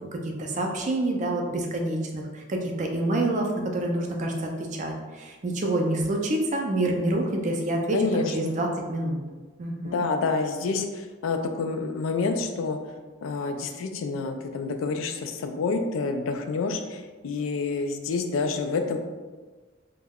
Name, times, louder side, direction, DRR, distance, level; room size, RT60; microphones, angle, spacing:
voice 1, 0.0-9.2 9.6-10.0, right 1 dB, 40° right, 1 dB, 0.4 m, -27 dB
voice 2, 7.9-8.6 9.8-12.8 13.2-19.0, left 4 dB, 85° left, 5 dB, 0.3 m, -28 dB
2.2 x 2.0 x 3.4 m, 1.3 s
head